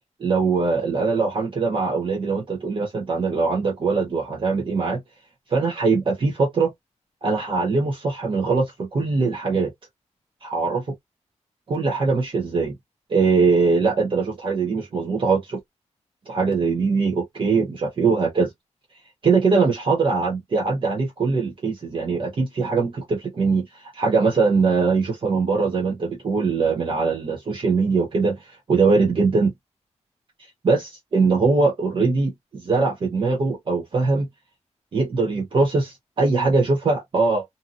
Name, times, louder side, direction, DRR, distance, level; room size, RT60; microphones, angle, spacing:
voice 1, 0.2-5.0 5.5-6.7 7.2-9.7 10.4-10.8 11.7-12.8 13.1-15.6 16.3-18.5 19.2-29.5 30.6-34.3 34.9-37.4, right 4 dB, 45° right, 0.8 m, -22 dB
2.7 x 2.5 x 2.4 m
wide cardioid pair, 170°, 12 cm